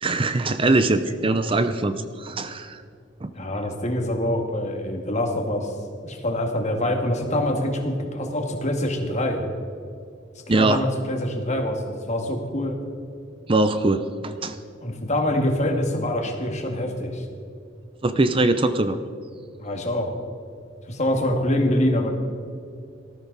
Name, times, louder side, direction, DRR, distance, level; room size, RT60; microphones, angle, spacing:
voice 1, 0.0-2.8 3.2-3.3 10.5-10.8 13.5-14.6 18.0-19.0, right 2 dB, 30° right, 10 dB, 0.6 m, -22 dB
voice 2, 3.3-5.7 6.0-9.4 10.5-12.8 14.8-17.3 19.6-20.1 20.9-22.1, left 1 dB, 40° left, 3 dB, 2.1 m, -25 dB
19.0 x 13.5 x 4.1 m, 2.4 s
head